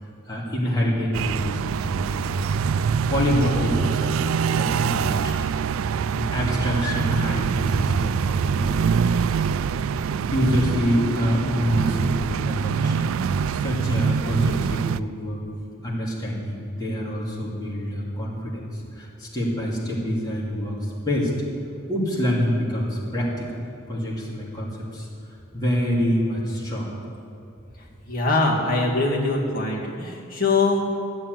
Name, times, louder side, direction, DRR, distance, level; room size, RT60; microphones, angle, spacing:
voice 1, 0.0-2.4 3.1-5.6 6.1-9.0 10.3-15.4 15.8-21.3 21.9-23.6 23.9-25.1 25.5-26.9, equal, 20° left, -5 dB, 2.6 m, -26 dB
sound 1, 1.1-15.0, right 6 dB, 85° right, 0.3 m, -24 dB
voice 2, 28.1-31.0, left 3 dB, 45° left, -3 dB, 2.4 m, -22 dB
14.0 x 7.4 x 9.3 m, 2.6 s
head